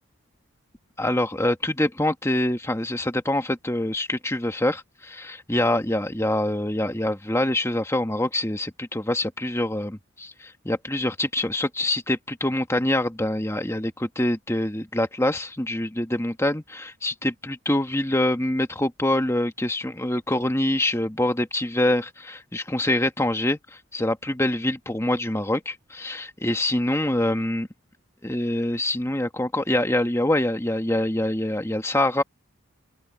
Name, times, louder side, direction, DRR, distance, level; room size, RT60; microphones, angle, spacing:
voice 1, 1.0-27.7 28.2-32.2, left 1 dB, 10° left, 1.4 m, -25 dB
open air
head